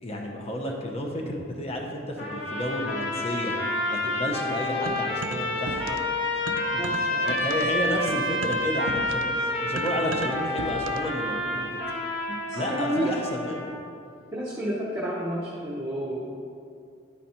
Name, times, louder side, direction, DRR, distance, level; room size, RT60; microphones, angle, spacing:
voice 1, 0.0-3.5 3.9-5.9 6.7-11.8 12.5-13.7, equal, 30° left, 0 dB, 0.8 m, -31 dB
sound 1, 2.2-13.7, left 1 dB, 75° left, 1.8 m, -29 dB
sound 2, 4.9-6.2 6.5-11.2, right 3 dB, 85° right, 0.4 m, -37 dB
voice 2, 6.8-7.2 12.3-13.1 14.3-16.2, right 1 dB, 15° right, -5 dB, 0.8 m, -30 dB
10.5 x 4.1 x 4.3 m, 2.4 s
head